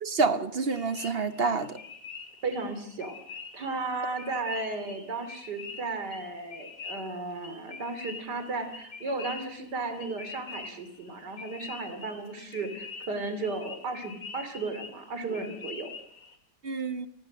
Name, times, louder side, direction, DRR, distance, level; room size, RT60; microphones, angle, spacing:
voice 1, 0.0-1.8 16.6-17.1, right 4 dB, 45° right, 1.0 m, -28 dB
sound 1, 0.7-16.4, left 5 dB, 55° left, 2.6 m, -45 dB
voice 2, 2.4-3.2 3.5-15.9, right 3 dB, 80° right, 3.4 m, -34 dB
30.0 x 16.0 x 6.4 m
omnidirectional pair, 1.8 m